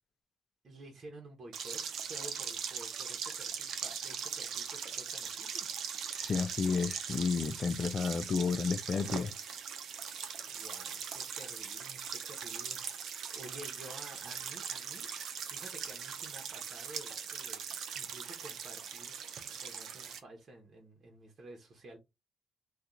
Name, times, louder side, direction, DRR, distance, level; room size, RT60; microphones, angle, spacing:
voice 1, 0.6-1.8 2.1-5.7 10.5-15.1 15.5-22.0, right 1 dB, 45° right, 1.0 m, -52 dB
sound 1, 1.5-20.2, right 7 dB, 70° right, 0.6 m, -40 dB
voice 2, 6.1-9.3, left 5 dB, 45° left, 0.4 m, -31 dB
2.8 x 2.4 x 3.7 m
cardioid pair, 90°, 0 cm